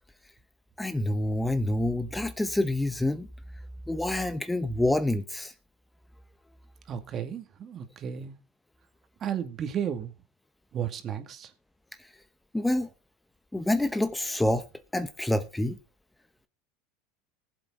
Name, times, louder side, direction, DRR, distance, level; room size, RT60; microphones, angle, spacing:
voice 1, 0.8-3.3 3.9-5.5 12.5-12.9 13.5-14.6 14.9-15.8, left 1 dB, 5° left, 0.9 m, -27 dB
voice 2, 6.9-8.4 9.2-10.1 10.7-11.5, right 8 dB, 40° right, 2.2 m, -33 dB
19.5 x 7.8 x 3.7 m
hypercardioid pair, 100°, 0 cm